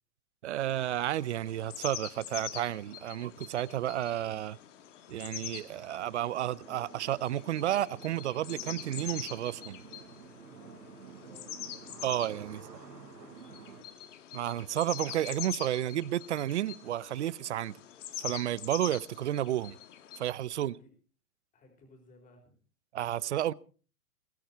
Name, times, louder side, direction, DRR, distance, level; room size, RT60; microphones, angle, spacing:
voice 1, 0.4-4.6 5.1-9.8 12.0-12.6 14.3-17.8 18.2-19.8 20.2-20.7 22.9-23.5, right 12 dB, 50° right, 0.6 m, -32 dB
sound 1, 0.6-20.3, left 11 dB, 50° left, 1.8 m, -45 dB
sound 2, 6.6-13.8, right 6 dB, 80° right, 4.0 m, -50 dB
voice 2, 10.5-14.1 20.5-20.9 21.5-22.6, left 1 dB, 15° left, 4.4 m, -59 dB
21.5 x 11.5 x 4.6 m
hypercardioid pair, 150°, 47 cm